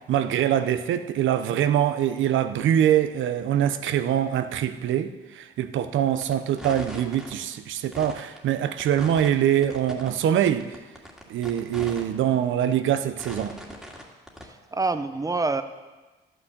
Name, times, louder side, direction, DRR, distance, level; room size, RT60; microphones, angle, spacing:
voice 1, 0.0-10.8 11.3-13.6, right 10 dB, 75° right, 0.8 m, -24 dB
sound 1, 6.2-6.3 6.6-7.3 7.8-8.4 8.8-9.3 9.6-10.1 10.5-12.0 12.4-12.5 13.2-14.0 14.3-14.4, equal, ahead, 2.2 m, -39 dB
voice 2, 14.4-15.6, right 3 dB, 15° right, 0.8 m, -27 dB
11.5 x 6.1 x 8.1 m
cardioid pair, 90°, 20 cm